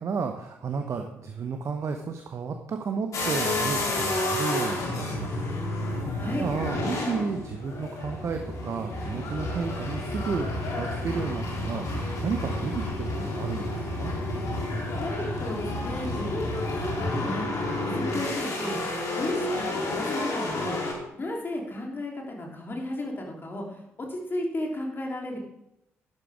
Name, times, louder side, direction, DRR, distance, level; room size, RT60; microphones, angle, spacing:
voice 1, 0.0-14.1, right 5 dB, 45° right, 5 dB, 1.0 m, -33 dB
sound 1, 3.1-20.9, left 2 dB, 55° left, 3.2 m, -30 dB
voice 2, 6.2-6.5 15.0-23.8 24.1-25.4, left 1 dB, 35° left, 0 dB, 3.6 m, -34 dB
12.0 x 11.0 x 3.6 m, 0.83 s
figure-of-eight pair, 40°, 7 cm